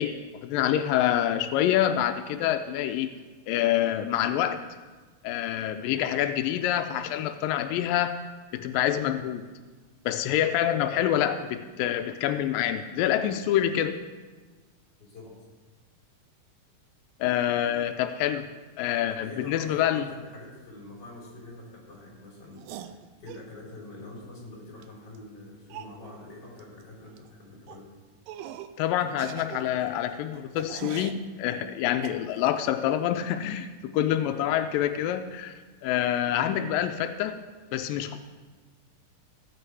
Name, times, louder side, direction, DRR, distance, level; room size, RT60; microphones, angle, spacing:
voice 1, 0.0-3.1 3.5-4.6 5.2-8.2 8.5-9.5 10.1-14.0 17.2-18.5 18.8-20.1 28.8-33.7 33.9-35.5 35.8-37.4 37.7-38.2, left 11 dB, 90° left, 8 dB, 2.3 m, -26 dB
voice 2, 15.0-15.3 19.1-27.9 34.3-34.4, left 2 dB, 30° left, -3 dB, 4.3 m, -45 dB
sound 1, 22.6-23.5 24.8-24.9 25.2-25.3 25.7-26.0 26.6-26.8 27.1-27.3 27.7-27.8 28.3-28.8 29.1-31.2 32.0-32.6, right 11 dB, 85° right, 2.3 m, -42 dB
15.0 x 8.5 x 4.7 m, 1.3 s
omnidirectional pair, 3.9 m